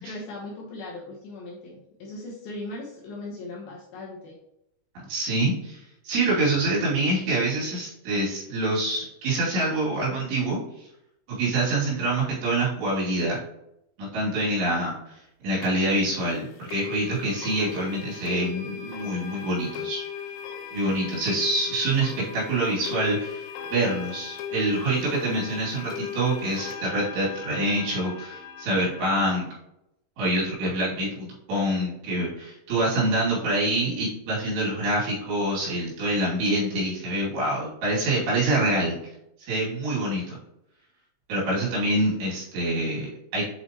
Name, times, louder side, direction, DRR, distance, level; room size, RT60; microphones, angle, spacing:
voice 1, 0.0-4.4, left 2 dB, 70° left, -4 dB, 2.5 m, -38 dB
voice 2, 5.0-5.8 6.0-10.9 11.3-13.4 14.0-15.1 15.4-20.0 20.7-29.5 30.2-39.0 39.4-40.4 41.3-43.5, right 1 dB, 70° right, -6 dB, 4.8 m, -26 dB
sound 1, 15.6-15.7 16.7-29.1, left 7 dB, 85° left, 3.1 m, -37 dB
8.2 x 5.1 x 3.0 m, 0.83 s
omnidirectional pair, 5.3 m